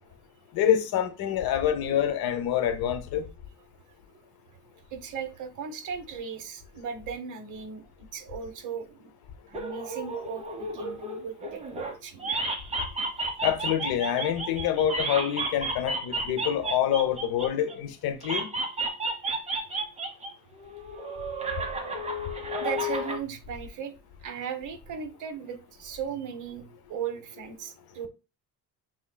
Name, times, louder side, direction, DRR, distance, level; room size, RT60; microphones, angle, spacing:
voice 1, 0.5-3.3 13.4-18.5, left 10 dB, 70° left, 0.9 m, -26 dB
voice 2, 4.9-9.1 9.5-12.4 13.1-13.2 22.6-23.9 24.2-28.1, right 7 dB, 55° right, 1.1 m, -37 dB
sound 1, 9.5-11.9 12.2-17.7 18.2-20.3 20.6-23.2, right 2 dB, 15° right, 1.0 m, -32 dB
6.3 x 3.7 x 2.2 m
cardioid pair, 145°, 37 cm